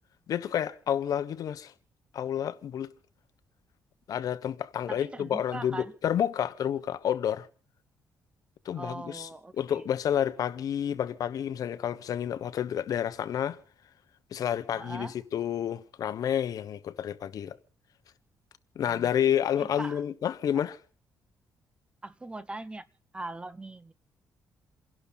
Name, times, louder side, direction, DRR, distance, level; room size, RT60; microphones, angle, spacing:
voice 1, 0.3-1.7 2.1-2.9 4.1-7.5 8.6-9.3 9.6-13.6 14.3-17.6 18.7-20.8, left 9 dB, 65° left, 1.2 m, -29 dB
voice 2, 4.9-5.9 8.7-9.8 14.7-15.2 18.8-19.1 19.6-20.0 22.0-22.8 23.1-23.9, right 2 dB, 15° right, 0.8 m, -41 dB
29.0 x 11.5 x 4.2 m
cardioid pair, 120°, 7 cm